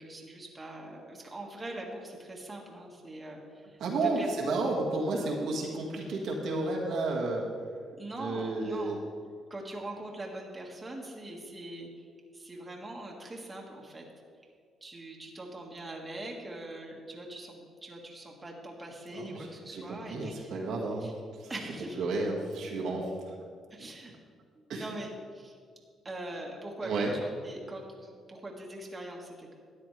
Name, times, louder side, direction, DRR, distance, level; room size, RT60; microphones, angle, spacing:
voice 1, 0.0-4.6 8.0-9.0 9.5-12.1 12.3-14.1 14.8-20.7 21.0-21.1 21.5-22.0 23.7-24.2 24.6-25.5 26.0-29.6, right 1 dB, 20° right, -1 dB, 1.9 m, -42 dB
voice 2, 3.8-7.4 8.2-9.0 19.1-23.1 23.8-23.9 24.7-24.9 26.8-27.1, right 2 dB, 75° right, -2 dB, 1.9 m, -32 dB
13.0 x 9.6 x 3.4 m, 2.1 s
cardioid pair, 90°, 0 cm